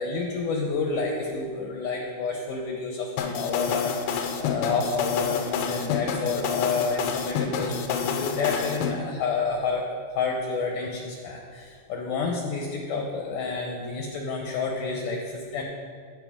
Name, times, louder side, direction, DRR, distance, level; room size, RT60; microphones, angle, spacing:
voice 1, 0.0-15.6, left 4 dB, 70° left, 0 dB, 2.1 m, -29 dB
sound 1, 3.2-8.9, left 7 dB, 90° left, 2.6 m, -28 dB
15.5 x 5.7 x 3.6 m, 2.1 s
omnidirectional pair, 4.5 m